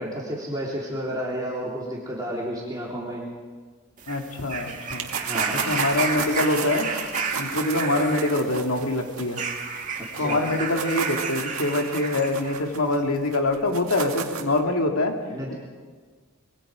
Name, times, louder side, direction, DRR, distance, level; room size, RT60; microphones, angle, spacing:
voice 1, 0.0-3.2 5.2-5.7 10.2-10.4 15.3-15.5, equal, 20° right, -5 dB, 3.4 m, -31 dB
sound 1, 4.0-12.6 13.6-13.7, right 5 dB, 35° right, 1.9 m, -32 dB
voice 2, 4.1-5.1 5.5-6.9 7.4-9.4 10.2-15.1, left 2 dB, 85° left, 2 dB, 2.6 m, -24 dB
sound 2, 4.9-10.2 10.5-14.6, right 6 dB, 85° right, 2.1 m, -33 dB
25.5 x 22.0 x 5.1 m, 1.5 s
head